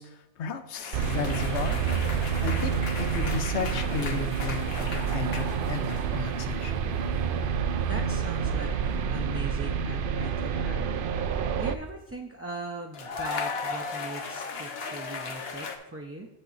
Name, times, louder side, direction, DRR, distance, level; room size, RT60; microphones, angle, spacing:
voice 1, 0.0-6.7, left 6 dB, 80° left, 9 dB, 1.1 m, -35 dB
sound 1, 0.7-6.2 6.5-7.0 8.8-9.1 12.9-15.8, left 4 dB, 65° left, 1.1 m, -37 dB
sound 2, 0.9-11.8, right 7 dB, 60° right, 0.6 m, -28 dB
sound 3, 2.8-10.4, right 1 dB, 90° right, 2.0 m, -45 dB
voice 2, 7.9-16.3, right 2 dB, 20° right, 0 dB, 0.4 m, -40 dB
7.4 x 6.8 x 3.9 m, 0.98 s
omnidirectional pair, 1.1 m